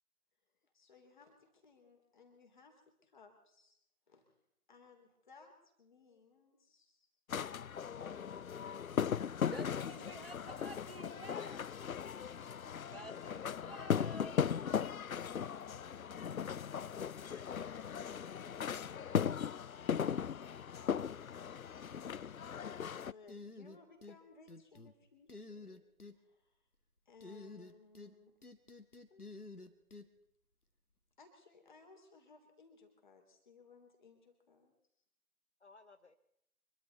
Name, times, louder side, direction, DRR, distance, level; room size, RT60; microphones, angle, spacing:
voice 1, 0.7-3.8 4.1-4.4 4.7-5.5 5.8-7.1 20.1-25.8 26.1-26.6 27.1-28.3 31.2-34.7, left 4 dB, 30° left, 4 dB, 3.3 m, -63 dB
sound 1, 7.3-23.1, left 7 dB, 70° left, 0.5 m, -38 dB
voice 2, 9.5-11.7 12.9-14.4, right 2 dB, 40° right, 16 dB, 0.6 m, -51 dB
voice 3, 17.1-17.8 29.1-29.2 35.6-36.1, left 3 dB, 50° left, 9 dB, 1.0 m, -61 dB
sound 2, 23.3-24.2 24.5-24.9 25.3-26.1 27.2-28.1 28.4-30.1, left 3 dB, 85° left, 1.9 m, -50 dB
25.0 x 13.5 x 4.2 m, 0.74 s
figure-of-eight pair, 155°, 44 cm